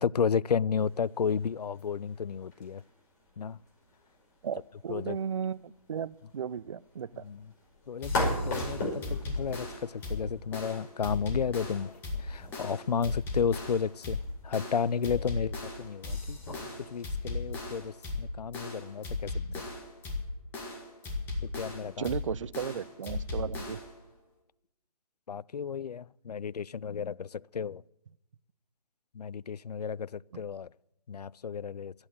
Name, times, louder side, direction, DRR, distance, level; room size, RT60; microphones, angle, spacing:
voice 1, 0.0-2.8 3.4-3.6 4.9-5.2 7.2-7.4 7.9-11.9 12.2-19.7 21.4-22.1 25.3-27.8 29.1-30.7 31.1-31.9, left 6 dB, 85° left, 0.4 m, -33 dB
sound 1, 0.8-17.1, left 1 dB, 30° left, 5.4 m, -41 dB
voice 2, 4.4-7.2 22.0-23.8, right 7 dB, 55° right, 0.4 m, -35 dB
sound 2, 8.0-24.0, left 3 dB, 10° left, 1.8 m, -37 dB
13.0 x 8.8 x 8.5 m
figure-of-eight pair, 155°, 20 cm